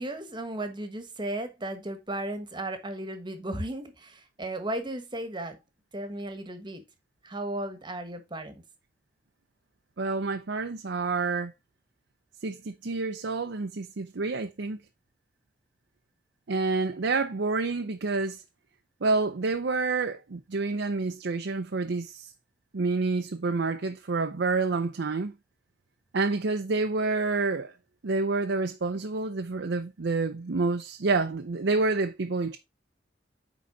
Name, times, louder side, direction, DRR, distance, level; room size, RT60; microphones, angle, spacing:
voice 1, 0.0-5.6 5.9-6.8 7.2-8.6, right 1 dB, 25° right, 1.3 m, -35 dB
voice 2, 10.0-11.5 12.4-14.8 16.5-18.4 19.0-22.3 22.7-25.3 26.1-27.7 28.0-32.6, right 3 dB, 75° right, 0.6 m, -28 dB
9.5 x 3.9 x 3.9 m
head